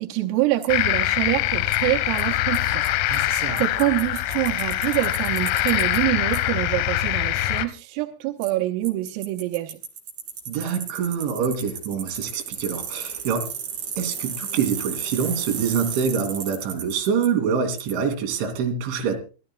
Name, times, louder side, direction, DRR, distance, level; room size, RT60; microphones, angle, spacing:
voice 1, 0.0-2.8 3.2-9.8, right 16 dB, 90° right, 2 dB, 3.6 m, -26 dB
Bicycle, 0.6-0.7 1.7-1.8 2.2-2.3 2.5-2.6 2.8-2.9 3.1-6.0 6.3-6.4 8.4-8.5 8.8-17.3 17.8-17.9, right 7 dB, 45° right, 3.0 m, -34 dB
sound 1, 0.7-7.7, left 15 dB, 80° left, 2.6 m, -24 dB
voice 2, 3.1-3.6 10.5-13.5 14.0-19.2, right 6 dB, 70° right, 4 dB, 4.8 m, -25 dB
24.5 x 13.5 x 2.3 m, 0.33 s
omnidirectional pair, 5.9 m